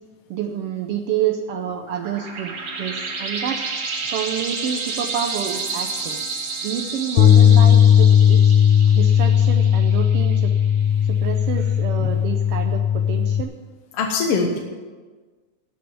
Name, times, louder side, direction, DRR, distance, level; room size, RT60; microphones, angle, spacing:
voice 1, 0.3-2.5 2.8-3.6 4.1-6.2 6.6-8.5 8.9-10.5 11.1-13.5, right 8 dB, 80° right, 5 dB, 1.3 m, -28 dB
sound 1, 1.7-10.8, right 4 dB, 55° right, 2.4 m, -31 dB
Bass guitar, 7.2-13.4, left 9 dB, 85° left, 2.1 m, -16 dB
voice 2, 13.9-14.6, left 4 dB, 60° left, 2 dB, 1.9 m, -22 dB
13.0 x 6.3 x 9.5 m, 1.4 s
omnidirectional pair, 3.5 m